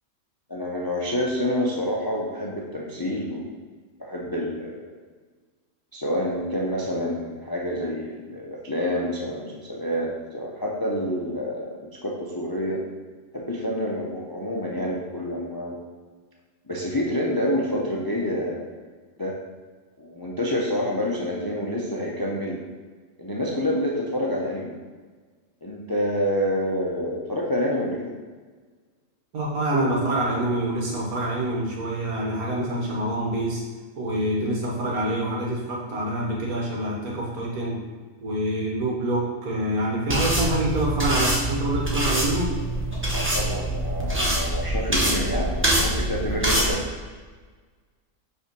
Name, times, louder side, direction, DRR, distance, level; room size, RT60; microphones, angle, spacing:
voice 1, 0.5-3.5 4.0-4.9 5.9-12.8 13.3-15.8 16.7-18.7 19.2-19.4 20.0-22.6 23.2-24.8 25.6-28.1 43.1-46.9, equal, 35° left, -3 dB, 0.3 m, -28 dB
voice 2, 29.3-33.6 34.0-37.8 38.2-42.5, right 1 dB, 90° right, -2 dB, 1.7 m, -26 dB
sound 1, 40.1-46.7, right 1 dB, 10° right, 0.7 m, -25 dB
5.3 x 3.5 x 5.2 m, 1.4 s
omnidirectional pair, 1.5 m